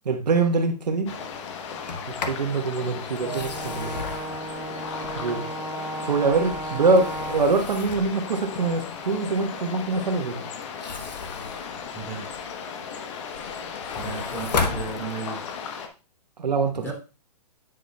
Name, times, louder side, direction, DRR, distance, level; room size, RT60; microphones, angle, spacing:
voice 1, 0.0-1.2 2.1-4.1 5.2-5.4 6.0-10.4 16.4-16.9, right 4 dB, 80° right, 1.3 m, -24 dB
sound 1, 1.1-15.9, left 6 dB, 45° left, 1.0 m, -36 dB
Sliding door, 1.7-2.5 3.2-5.5 6.1-8.2 10.6-12.5 13.0-15.5, left 4 dB, 80° left, 1.2 m, -34 dB
Brass instrument, 3.2-7.6, right 2 dB, 15° right, 3.5 m, -34 dB
voice 2, 11.9-12.3 13.9-15.4 16.7-16.9, right 5 dB, 10° left, 2.8 m, -34 dB
9.2 x 6.3 x 2.3 m
hypercardioid pair, 135°, 21 cm